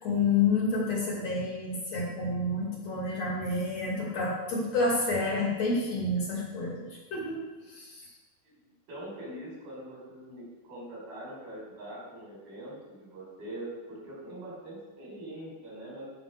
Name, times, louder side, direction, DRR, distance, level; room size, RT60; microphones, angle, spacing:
voice 1, 0.0-8.1, left 3 dB, 45° left, -3 dB, 3.4 m, -29 dB
voice 2, 8.4-16.0, right 1 dB, 65° right, -5 dB, 6.8 m, -43 dB
15.0 x 6.7 x 6.2 m, 1.2 s
omnidirectional pair, 4.7 m